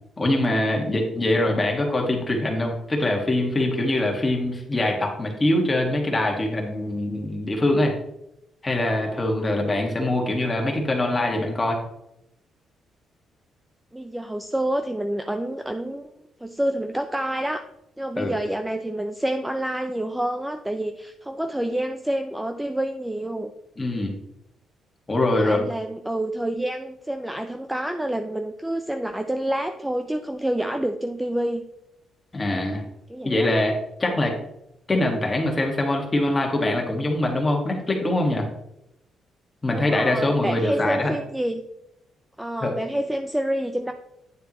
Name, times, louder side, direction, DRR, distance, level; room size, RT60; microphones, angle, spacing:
voice 1, 0.2-7.9 8.6-11.8 18.2-18.3 23.8-24.1 25.1-25.7 32.3-32.8 33.2-34.3 34.9-38.5 39.6-41.1 42.6-42.7, left 1 dB, 15° left, 1 dB, 1.7 m, -23 dB
voice 2, 13.9-16.1 16.4-17.6 18.0-23.5 25.3-31.6 33.1-33.5 39.7-41.6 42.4-43.9, right 1 dB, 5° right, 7 dB, 0.4 m, -28 dB
9.4 x 6.9 x 3.0 m, 0.84 s
cardioid pair, 140°, 0 cm